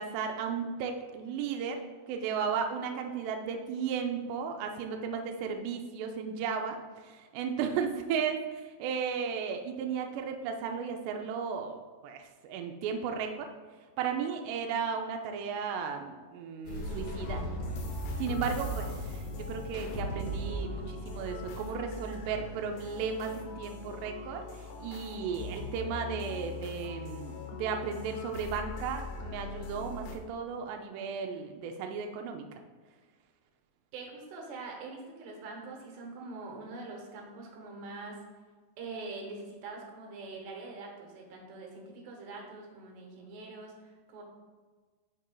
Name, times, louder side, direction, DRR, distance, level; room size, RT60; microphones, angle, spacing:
voice 1, 0.0-1.8 2.1-6.8 7.0-13.5 14.0-17.4 18.2-32.4, right 6 dB, 85° right, 4 dB, 2.4 m, -35 dB
sound 1, 16.6-22.2, right 1 dB, 60° left, 2.1 m, -38 dB
sound 2, 16.8-30.2, left 3 dB, 85° left, 3.2 m, -42 dB
voice 2, 33.9-38.2 38.8-44.2, right 3 dB, 70° right, 0 dB, 3.0 m, -44 dB
13.0 x 4.3 x 2.2 m, 1.5 s
omnidirectional pair, 5.5 m